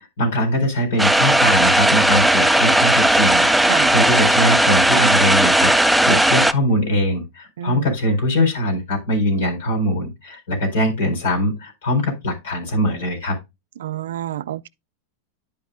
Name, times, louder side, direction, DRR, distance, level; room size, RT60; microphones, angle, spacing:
voice 1, 0.2-13.3, equal, 85° left, 4.2 m, -22 dB
sound 1, 1.0-6.5, right 1 dB, ahead, 0.3 m, -16 dB
voice 2, 7.6-7.9 13.8-14.7, right 10 dB, 85° right, 0.4 m, -28 dB
11.0 x 5.5 x 2.5 m
supercardioid pair, 135°, 0 cm